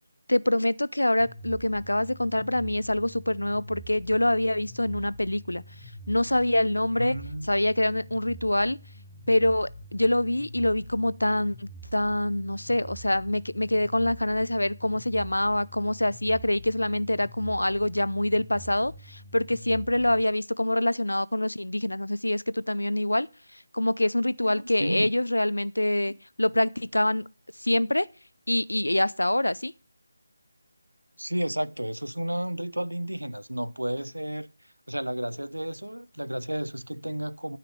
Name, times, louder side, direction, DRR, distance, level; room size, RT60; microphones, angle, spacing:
voice 1, 0.3-5.6 6.1-7.2 7.5-8.8 9.3-27.2 27.6-28.1 28.5-29.7, left 1 dB, 80° left, 0.6 m, -25 dB
sound 1, 1.2-20.2, right 1 dB, 5° right, 4.8 m, -46 dB
voice 2, 7.0-7.5 24.4-25.1 31.2-34.5 34.9-37.6, right 1 dB, 90° right, 0.9 m, -32 dB
12.5 x 5.8 x 6.6 m
figure-of-eight pair, 160°, 0 cm